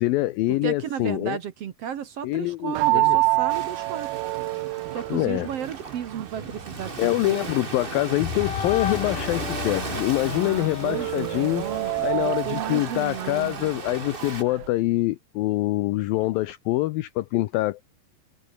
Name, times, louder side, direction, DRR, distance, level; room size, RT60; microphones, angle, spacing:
voice 1, 0.0-1.4 2.2-3.2 5.1-5.5 7.0-11.7 12.0-17.8, left 17 dB, 75° left, 2.4 m, -25 dB
voice 2, 0.6-4.1 4.9-7.5 10.2-13.7, right 9 dB, 65° right, 1.5 m, -34 dB
sound 1, 2.8-14.7, right 21 dB, 80° right, 2.4 m, -29 dB
Ocean, 3.5-14.4, right 3 dB, 25° right, 1.1 m, -37 dB
sound 2, 6.4-12.3, left 8 dB, 60° left, 3.8 m, -35 dB
open air
omnidirectional pair, 4.6 m